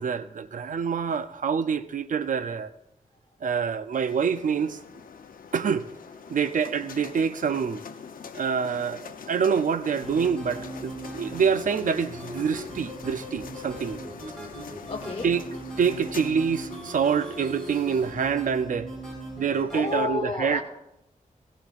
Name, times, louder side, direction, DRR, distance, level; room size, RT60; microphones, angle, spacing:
voice 1, 0.0-2.7 3.4-4.8 5.5-5.9 6.3-7.8 8.3-14.0 15.2-15.4 15.8-18.9 19.4-20.6, right 6 dB, 65° right, 0.6 m, -26 dB
sound 1, 3.9-18.4, left 6 dB, 80° left, 0.7 m, -44 dB
sound 2, 10.0-20.1, right 1 dB, 5° left, 5.6 m, -39 dB
voice 2, 14.9-15.3 19.7-20.6, left 4 dB, 45° left, 2.2 m, -30 dB
16.5 x 16.5 x 2.5 m
wide cardioid pair, 120°, 14 cm